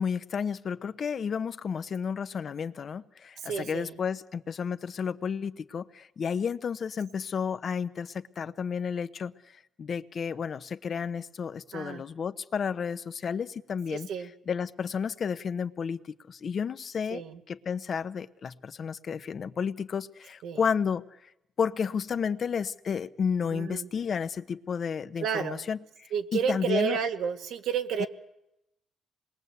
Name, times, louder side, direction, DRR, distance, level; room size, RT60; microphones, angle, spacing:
voice 1, 0.0-14.1 14.5-21.0 21.6-27.0 28.0-28.1, left 6 dB, 50° left, 0.9 m, -32 dB
voice 2, 3.4-4.0 11.7-12.0 13.9-14.3 17.1-17.4 20.4-20.6 23.5-23.9 25.2-25.6 26.1-28.1, right 7 dB, 80° right, 1.9 m, -31 dB
27.0 x 21.5 x 8.2 m
cardioid pair, 90°, 0 cm